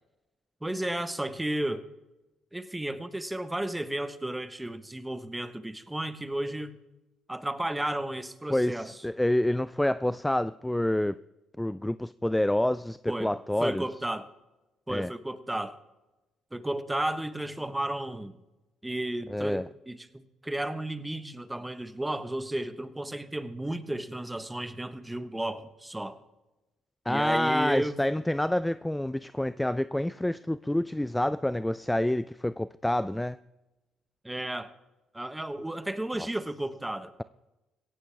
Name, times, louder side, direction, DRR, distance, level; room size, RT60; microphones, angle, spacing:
voice 1, 0.6-1.9 2.5-6.7 7.3-8.9 13.1-13.3 13.6-14.3 14.9-15.7 16.5-18.4 18.8-26.2 27.1-28.0 34.2-34.7 35.1-37.1, right 1 dB, 10° right, 12 dB, 1.1 m, -33 dB
voice 2, 8.5-11.2 11.6-13.8 14.9-15.1 19.3-19.7 27.1-33.4 36.2-36.3, left 1 dB, 5° left, 17 dB, 0.3 m, -28 dB
17.0 x 15.5 x 3.4 m, 1.0 s
supercardioid pair, 70°, 0 cm